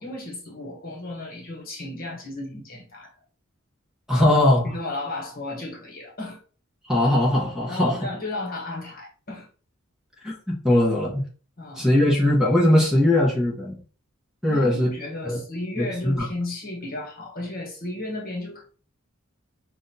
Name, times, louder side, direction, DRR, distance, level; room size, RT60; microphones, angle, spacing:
voice 1, 0.0-3.1 4.6-6.4 7.7-9.5 11.6-11.9 14.5-18.6, left 2 dB, 45° left, 1.2 m, -34 dB
voice 2, 4.1-4.7 6.9-8.0 10.2-11.2 11.7-13.8 14.4-14.9 15.2-15.4 15.8-16.3, left 1 dB, 5° right, 1.2 m, -20 dB
6.1 x 2.5 x 2.8 m
head